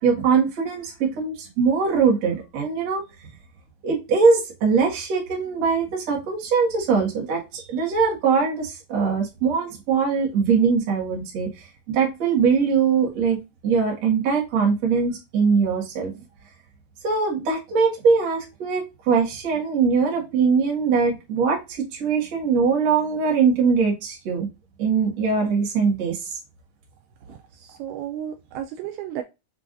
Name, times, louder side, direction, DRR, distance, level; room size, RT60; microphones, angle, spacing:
voice 1, 0.0-3.0 3.8-16.3 17.0-24.5 24.8-26.4, right 5 dB, 55° right, 2.0 m, -22 dB
voice 2, 27.5-29.2, right 10 dB, 90° right, 2.2 m, -33 dB
6.9 x 2.3 x 2.5 m
omnidirectional pair, 5.0 m